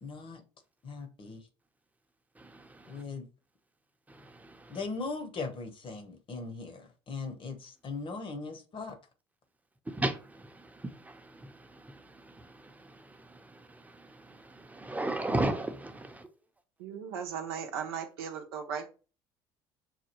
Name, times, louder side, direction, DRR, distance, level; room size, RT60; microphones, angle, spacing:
voice 1, 0.0-0.4 0.8-1.5 2.9-3.3 4.7-9.0, left 4 dB, 45° left, 0.9 m, -39 dB
voice 2, 2.3-3.1 4.1-4.9 9.8-16.4, right 1 dB, 10° right, 0.7 m, -37 dB
voice 3, 16.8-18.9, right 7 dB, 85° right, 0.7 m, -37 dB
5.8 x 2.2 x 3.0 m
hypercardioid pair, 65°, 13 cm